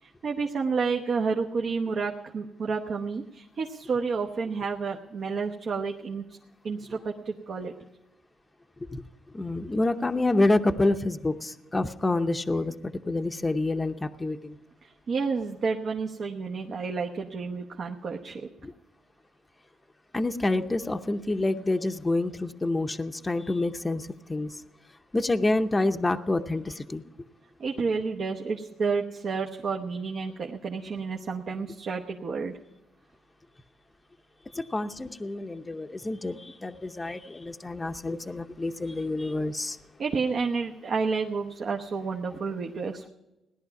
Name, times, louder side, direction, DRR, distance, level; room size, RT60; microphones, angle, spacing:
voice 1, 0.0-6.4 6.6-7.7 14.8-18.5 27.6-32.5 40.0-43.1, right 4 dB, 55° right, 1 dB, 1.0 m, -30 dB
voice 2, 9.3-12.7 13.1-14.6 18.6-18.7 20.1-24.6 25.1-27.0 34.5-39.8, left 2 dB, 20° left, 6 dB, 0.8 m, -27 dB
17.0 x 11.0 x 5.8 m, 1.0 s
cardioid pair, 90°, 0 cm